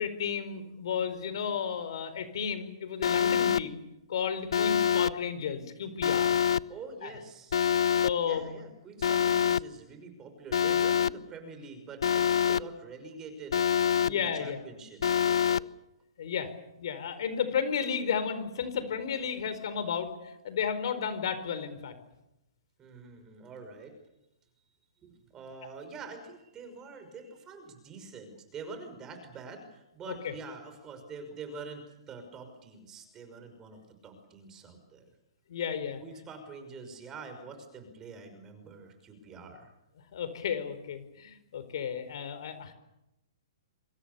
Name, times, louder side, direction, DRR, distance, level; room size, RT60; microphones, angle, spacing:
voice 1, 0.0-3.8 4.1-6.3 7.0-7.1 8.0-8.5 14.0-14.6 16.2-16.5 16.8-20.1 20.4-21.9 30.1-30.3 35.5-36.0 40.1-42.7, left 7 dB, 60° left, 11 dB, 4.5 m, -33 dB
Alarm, 3.0-3.6 4.5-5.1 6.0-6.6 7.5-8.1 9.0-9.6 10.5-11.1 12.0-12.6 13.5-14.1 15.0-15.6, left 8 dB, 75° left, 0.8 m, -25 dB
voice 2, 6.7-7.7 8.1-15.7 22.8-24.0 25.0-35.1 36.0-39.7, right 4 dB, 15° right, 7 dB, 5.8 m, -46 dB
27.0 x 25.5 x 6.9 m, 0.89 s
hypercardioid pair, 155°, 3 cm